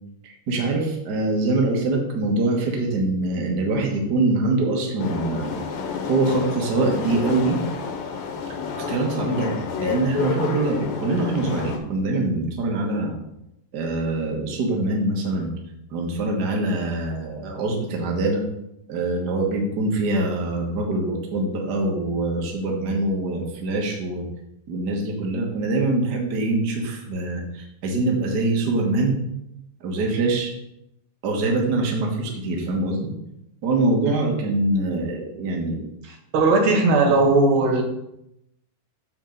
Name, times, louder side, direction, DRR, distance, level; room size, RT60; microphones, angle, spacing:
voice 1, 0.2-5.5 6.0-7.6 8.8-13.1 13.7-15.5 15.9-18.4 18.9-24.2 24.7-29.1 29.8-30.5 31.2-33.1 33.6-35.8 37.1-37.2, right 2 dB, 85° right, 0 dB, 0.9 m, -24 dB
sound 1, 5.0-11.8, left 6 dB, 85° left, 2.5 m, -29 dB
voice 2, 36.3-37.8, right 3 dB, 65° right, 1 dB, 2.0 m, -17 dB
7.2 x 3.6 x 6.4 m, 0.82 s
omnidirectional pair, 4.0 m